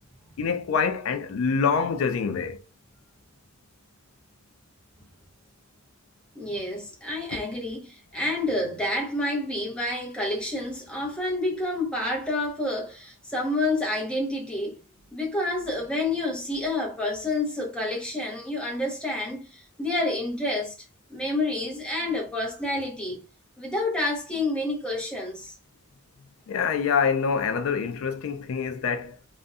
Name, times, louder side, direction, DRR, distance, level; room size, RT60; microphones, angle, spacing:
voice 1, 0.4-2.6 26.5-29.2, left 6 dB, 75° left, 0.3 m, -25 dB
voice 2, 6.3-14.8 15.1-20.7 21.1-23.2 23.6-25.5, left 2 dB, 5° left, 0.7 m, -29 dB
2.5 x 2.1 x 2.4 m
head